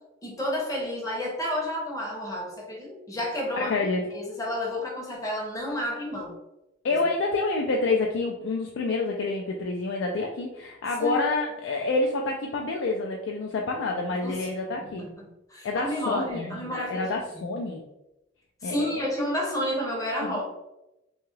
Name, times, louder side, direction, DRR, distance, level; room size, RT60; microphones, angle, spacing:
voice 1, 0.2-3.7 4.1-6.3 6.9-7.0 11.0-11.2 14.2-14.5 14.8-15.1 15.5-17.0 17.3-17.4 18.6-20.4, left 1 dB, 15° left, -2 dB, 0.7 m, -30 dB
voice 2, 3.6-4.0 6.8-15.0 15.6-17.8 18.6-19.1 20.2-20.4, left 3 dB, 65° left, 0 dB, 0.3 m, -28 dB
2.7 x 2.3 x 3.1 m, 0.92 s
head